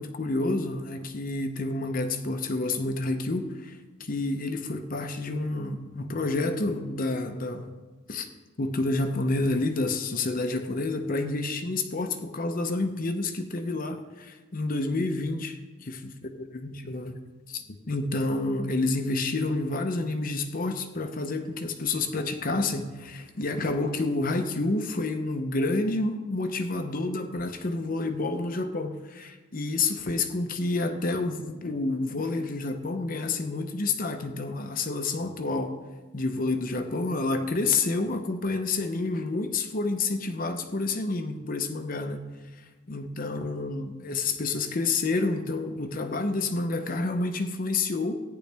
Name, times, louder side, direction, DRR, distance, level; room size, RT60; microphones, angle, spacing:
voice 1, 0.0-7.8 8.1-8.3 8.6-16.1 16.5-17.2 17.5-35.7 36.1-42.2 42.6-48.1, left 3 dB, 40° left, 7 dB, 0.7 m, -29 dB
14.5 x 9.8 x 3.4 m, 1.3 s
head